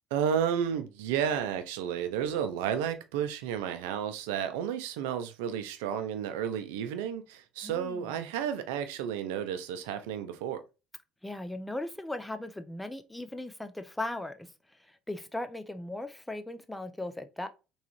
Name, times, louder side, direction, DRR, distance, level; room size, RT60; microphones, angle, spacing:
voice 1, 0.1-10.6, right 8 dB, 85° right, 0.5 m, -32 dB
voice 2, 7.6-8.2 11.2-14.5 14.9-17.5, left 2 dB, 10° left, 0.6 m, -38 dB
3.5 x 3.1 x 3.0 m
supercardioid pair, 75°, 0 cm